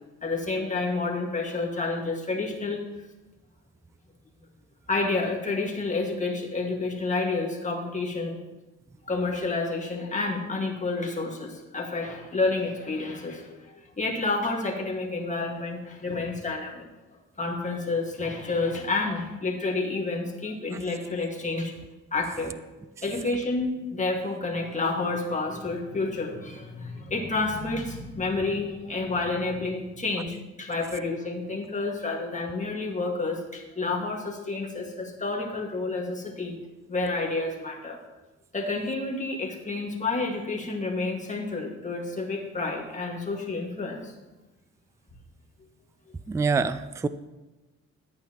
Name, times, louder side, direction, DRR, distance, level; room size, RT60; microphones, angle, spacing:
voice 1, 0.2-2.8 4.9-8.4 9.1-16.9 17.4-21.7 22.1-22.5 23.0-36.5 36.9-38.0 38.5-44.1, left 3 dB, 25° left, 0 dB, 1.9 m, -29 dB
voice 2, 46.3-47.1, right 4 dB, 10° right, 14 dB, 0.3 m, -25 dB
12.5 x 8.8 x 3.0 m, 1.1 s
cardioid pair, 90°, 30 cm